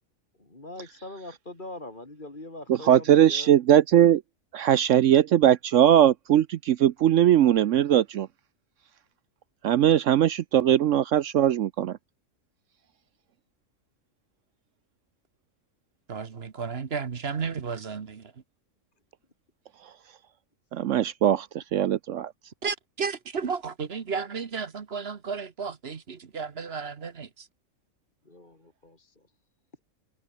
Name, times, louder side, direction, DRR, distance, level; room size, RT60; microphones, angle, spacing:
voice 1, 0.4-3.5 28.3-29.3, left 2 dB, 35° left, 3.5 m, -42 dB
voice 2, 2.7-4.2 4.5-8.3 9.6-12.0 20.7-22.3, right 11 dB, 70° right, 0.9 m, -20 dB
voice 3, 16.1-18.3 22.6-27.5, right 5 dB, 50° right, 1.4 m, -33 dB
omnidirectional pair, 1.5 m